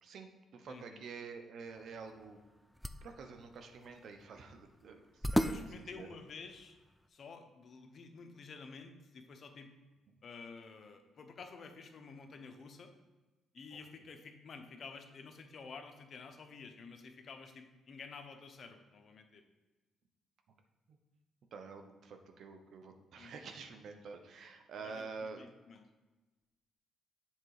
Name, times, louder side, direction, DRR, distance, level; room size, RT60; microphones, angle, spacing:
voice 1, 0.0-2.4 3.0-6.1 10.1-10.2 20.9-21.0 21.5-25.5, right 4 dB, 65° right, 6 dB, 0.8 m, -48 dB
voice 2, 0.7-1.0 5.3-6.8 7.1-9.7 10.2-12.9 13.5-19.4 23.1-23.4 24.8-25.9, left 4 dB, 50° left, 6 dB, 0.8 m, -51 dB
sound 1, 1.7-7.1, equal, ahead, 0.4 m, -39 dB
7.4 x 3.8 x 4.7 m, 1.2 s
cardioid pair, 90°, 0 cm